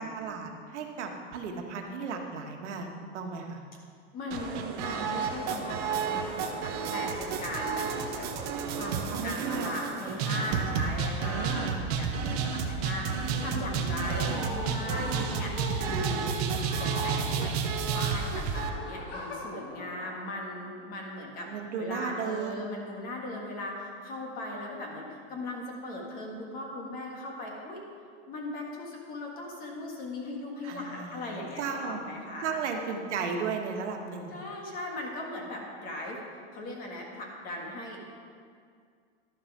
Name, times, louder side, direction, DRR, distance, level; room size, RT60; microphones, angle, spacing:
voice 1, 0.0-3.6 9.1-9.7 11.2-11.8 13.5-13.7 21.5-22.7 30.6-32.0 32.4-34.4, right 5 dB, 80° right, 2 dB, 1.6 m, -35 dB
voice 2, 4.1-17.6 17.9-21.5 21.8-27.8 28.3-32.6 34.3-36.2 36.5-38.0, left 1 dB, 25° left, 0 dB, 1.6 m, -38 dB
sound 1, 4.3-18.7, right 6 dB, 35° right, 0.8 m, -31 dB
sound 2, 5.4-11.6 11.9-20.9, left 2 dB, 65° left, 3.1 m, -43 dB
12.0 x 7.1 x 6.0 m, 2.2 s
supercardioid pair, 165°, 35 cm